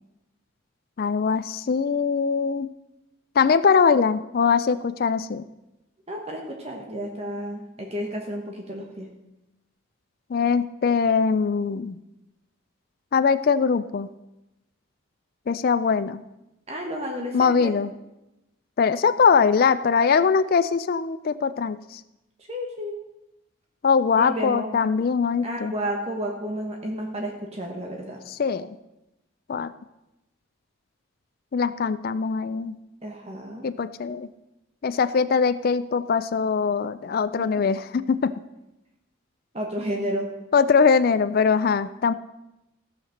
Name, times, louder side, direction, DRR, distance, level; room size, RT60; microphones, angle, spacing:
voice 1, 1.0-2.7 3.4-5.4 10.3-12.0 13.1-14.1 15.5-16.2 17.3-17.9 18.8-22.0 23.8-25.7 28.4-28.7 29.5-29.7 31.5-32.8 33.6-34.3 34.8-38.3 40.5-42.1, left 5 dB, 45° left, 13 dB, 0.4 m, -22 dB
voice 2, 6.1-9.1 16.7-17.8 22.5-23.0 24.2-24.7 25.4-28.2 33.0-33.7 37.4-37.5 39.5-40.3, equal, 30° right, 1 dB, 1.3 m, -31 dB
15.5 x 5.8 x 6.5 m, 0.95 s
head